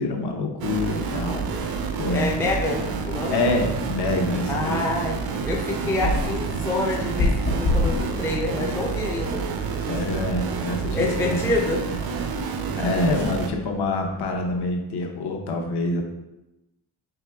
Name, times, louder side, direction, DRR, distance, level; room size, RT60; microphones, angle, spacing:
voice 1, 0.0-1.5 2.0-2.3 3.3-5.0 9.8-11.5 12.7-16.0, left 2 dB, 65° left, 2 dB, 0.8 m, -26 dB
sound 1, 0.6-13.5, right 5 dB, 55° right, 0.5 m, -29 dB
sound 2, 1.0-14.7, left 2 dB, 85° left, 1.1 m, -33 dB
voice 2, 2.1-3.4 4.5-5.2 5.5-9.5 10.9-11.8, left 2 dB, 5° left, -1 dB, 0.3 m, -27 dB
4.8 x 3.0 x 3.4 m, 0.95 s
wide cardioid pair, 160°, 44 cm